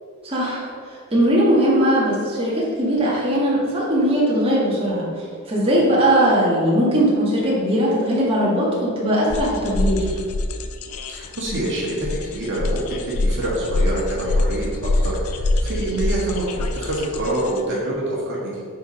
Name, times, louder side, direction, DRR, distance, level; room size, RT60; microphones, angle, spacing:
voice 1, 0.2-10.2, equal, 25° right, -7 dB, 2.0 m, -20 dB
sound 1, 9.3-17.6, left 2 dB, 85° left, 0.6 m, -25 dB
voice 2, 11.1-18.6, right 1 dB, 55° right, -6 dB, 1.6 m, -26 dB
8.7 x 4.1 x 5.3 m, 2.3 s
head